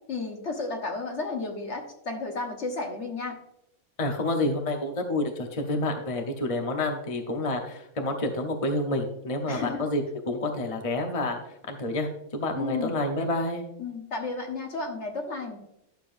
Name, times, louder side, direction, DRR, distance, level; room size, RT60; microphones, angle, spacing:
voice 1, 0.1-3.4 9.5-9.8 12.6-13.0 13.8-15.6, left 3 dB, 50° left, 2 dB, 1.6 m, -33 dB
voice 2, 4.0-11.4 11.7-13.6, left 2 dB, 30° left, 3 dB, 0.8 m, -29 dB
11.5 x 6.9 x 2.6 m, 0.79 s
omnidirectional pair, 1.5 m